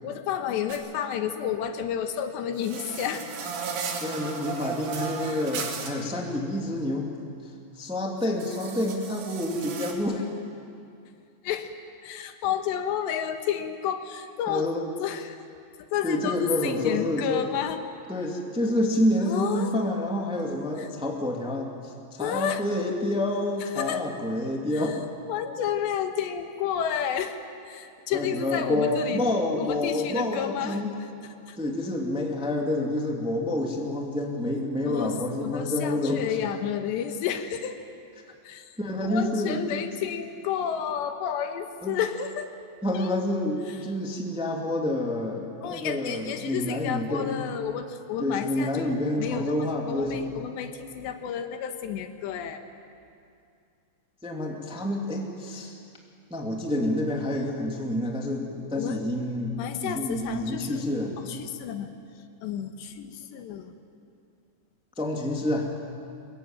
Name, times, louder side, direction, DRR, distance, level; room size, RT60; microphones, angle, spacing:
voice 1, 0.0-3.3 5.2-5.4 11.4-11.7 12.0-14.7 15.0-15.4 15.9-17.8 19.3-19.8 20.8-20.9 22.2-22.6 23.8-24.1 24.7-25.0 25.3-27.4 27.7-29.2 29.6-30.8 31.5-31.6 34.9-37.9 38.5-38.7 39.0-42.5 42.9-43.1 45.6-52.6 58.8-59.0 59.6-60.8 61.2-61.9 62.4-63.7, left 9 dB, 90° left, 7 dB, 3.6 m, -31 dB
sound 1, 0.7-0.8 2.6-5.9 8.2-9.9, right 5 dB, 85° right, 4.5 m, -35 dB
voice 2, 4.0-7.1 7.7-10.3 14.5-14.9 16.0-17.5 18.1-25.0 28.1-30.9 31.6-36.4 38.8-40.0 41.8-42.0 42.8-47.4 48.2-50.3 54.2-55.8 56.3-61.1 65.0-65.7, left 1 dB, ahead, 0 dB, 1.4 m, -28 dB
25.0 x 22.0 x 9.1 m, 2.5 s
omnidirectional pair, 4.9 m